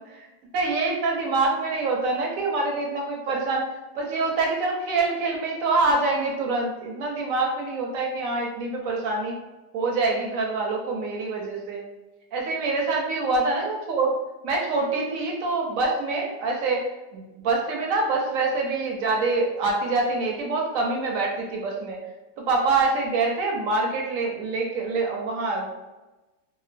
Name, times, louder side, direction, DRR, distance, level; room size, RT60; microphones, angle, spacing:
voice 1, 0.5-3.6 4.0-9.4 9.7-11.8 12.3-14.1 14.4-16.8 17.1-22.0 22.5-25.7, right 3 dB, 70° right, 0 dB, 0.8 m, -25 dB
2.9 x 2.2 x 2.4 m, 1.1 s
omnidirectional pair, 1.8 m